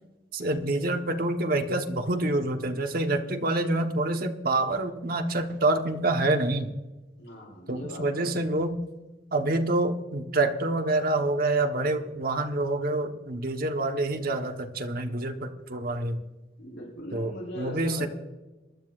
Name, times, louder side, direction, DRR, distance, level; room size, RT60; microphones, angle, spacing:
voice 1, 0.3-6.7 7.7-8.8 9.3-16.2 17.1-18.1, right 2 dB, 55° right, 4 dB, 1.1 m, -27 dB
voice 2, 7.2-8.5 16.6-18.1, equal, 90° left, -1 dB, 4.4 m, -40 dB
23.0 x 12.0 x 2.5 m, 1.1 s
head